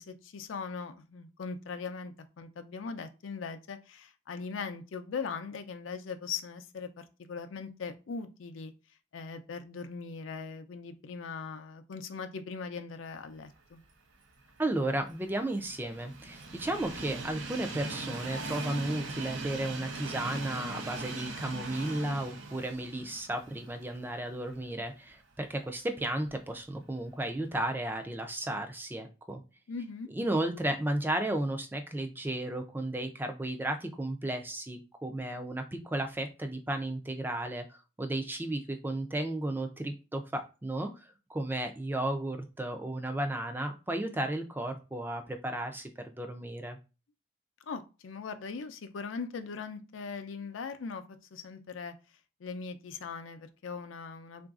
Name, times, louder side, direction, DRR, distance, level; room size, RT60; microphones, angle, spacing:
voice 1, 0.0-8.7 9.1-13.8 29.7-30.1 47.7-51.9 52.4-54.5, left 5 dB, 85° left, 8 dB, 0.5 m, -40 dB
Train, 14.5-24.7 25.1-25.2 26.3-26.4, right 3 dB, 85° right, 0.6 m, -40 dB
voice 2, 14.6-29.4 30.1-46.8, right 1 dB, 10° right, 6 dB, 0.4 m, -34 dB
3.8 x 2.5 x 2.4 m, 0.31 s
head